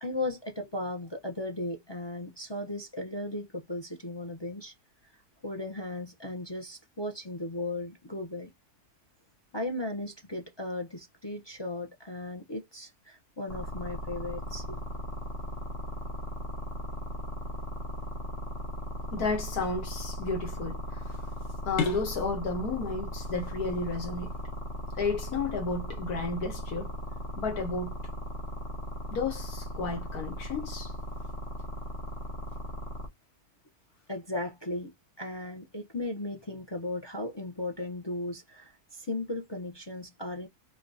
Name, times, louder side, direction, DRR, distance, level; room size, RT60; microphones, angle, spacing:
voice 1, 0.0-4.7 5.0-5.1 5.4-8.5 9.5-14.9 34.1-34.9 35.2-40.5, left 2 dB, 35° left, 0.4 m, -36 dB
sound 1, 13.5-33.1, equal, 55° left, 1.6 m, -37 dB
voice 2, 19.1-21.0 21.6-24.3 25.0-26.9 27.4-27.9 29.1-30.9, left 4 dB, 75° left, 1.5 m, -32 dB
5.0 x 2.3 x 2.6 m
omnidirectional pair, 1.7 m